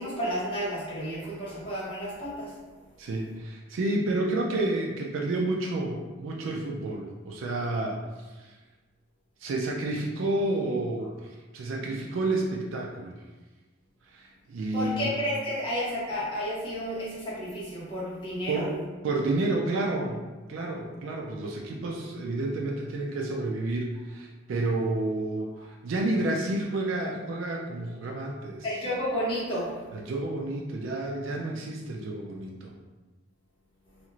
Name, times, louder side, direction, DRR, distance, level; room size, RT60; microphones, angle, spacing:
voice 1, 0.0-2.5 14.7-18.7 28.6-29.7, equal, 25° left, -8 dB, 1.0 m, -31 dB
voice 2, 3.0-8.0 8.3-8.5 9.4-13.2 14.1-15.1 18.5-20.2 20.5-28.7 29.9-32.7, right 2 dB, 70° right, -1 dB, 0.3 m, -30 dB
2.6 x 2.4 x 2.9 m, 1.3 s
head